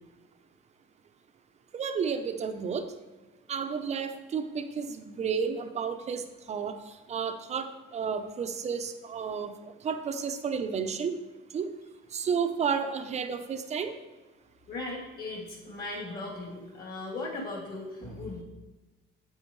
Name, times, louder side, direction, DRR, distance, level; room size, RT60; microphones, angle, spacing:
voice 1, 1.7-2.8 3.5-6.8 7.1-9.5 9.8-11.2 11.5-11.7 12.1-13.9, right 6 dB, 30° right, 8 dB, 0.6 m, -31 dB
voice 2, 14.7-18.4, left 2 dB, 45° left, -3 dB, 2.9 m, -38 dB
8.9 x 7.9 x 3.1 m, 1.2 s
cardioid pair, 150°, 21 cm